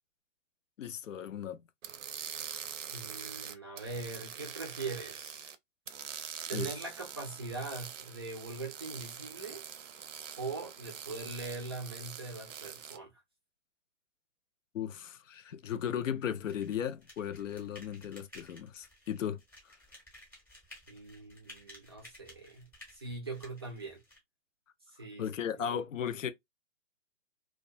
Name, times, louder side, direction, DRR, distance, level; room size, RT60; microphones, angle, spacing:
voice 1, 0.8-1.6 2.5-2.6 6.5-6.7 14.7-19.7 25.2-26.3, left 9 dB, 85° left, 0.5 m, -36 dB
sound 1, 1.8-5.6 5.9-13.0, right 8 dB, 80° right, 0.5 m, -44 dB
voice 2, 2.9-5.5 6.5-9.6 10.4-13.1 20.9-24.0 24.9-25.3 25.6-25.8, right 3 dB, 20° right, 0.3 m, -41 dB
sound 2, 16.4-24.2, left 1 dB, 5° left, 0.7 m, -55 dB
2.3 x 2.2 x 2.5 m
hypercardioid pair, 135°, 37 cm